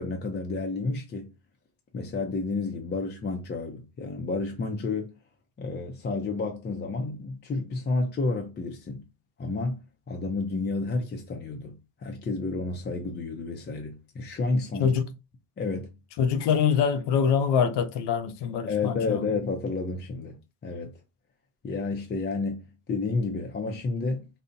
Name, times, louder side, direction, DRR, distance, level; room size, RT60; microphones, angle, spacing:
voice 1, 0.0-1.3 1.9-5.2 5.6-9.1 9.4-14.9 15.6-15.9 18.7-21.0 21.6-24.3, left 3 dB, 25° left, 0.5 m, -31 dB
voice 2, 16.2-19.3, left 7 dB, 85° left, 0.6 m, -24 dB
3.8 x 2.1 x 2.6 m
cardioid pair, 105°, 41 cm